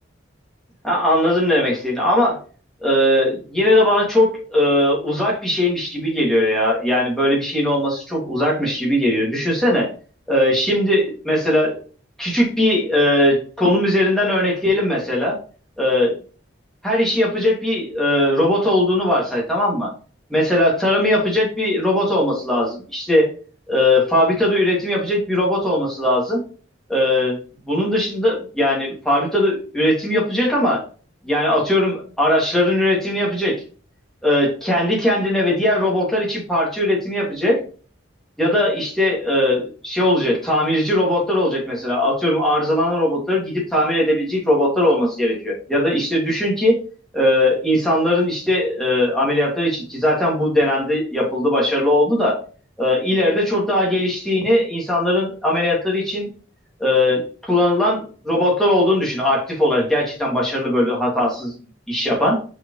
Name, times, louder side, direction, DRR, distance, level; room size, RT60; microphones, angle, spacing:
voice 1, 0.8-2.4 2.8-9.9 10.3-11.8 12.2-15.4 15.8-16.2 16.8-19.9 20.3-23.3 23.7-26.4 26.9-27.4 27.7-30.8 31.2-33.6 34.2-37.6 38.4-46.8 47.1-52.4 52.8-56.3 56.8-61.5 61.9-62.4, left 1 dB, ahead, -4 dB, 2.7 m, -19 dB
6.3 x 5.8 x 3.3 m, 0.39 s
head